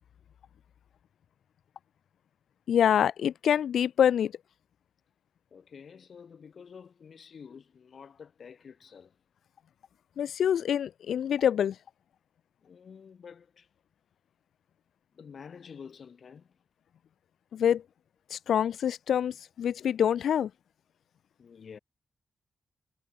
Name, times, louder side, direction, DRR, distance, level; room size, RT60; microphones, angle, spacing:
voice 1, 2.7-4.3 10.2-11.7 17.5-17.8 18.3-20.5, left 9 dB, 90° left, 1.4 m, -26 dB
voice 2, 5.5-9.2 12.6-13.7 15.1-16.5 21.4-21.8, left 6 dB, 60° left, 4.3 m, -49 dB
wide cardioid pair, 110°, 0 cm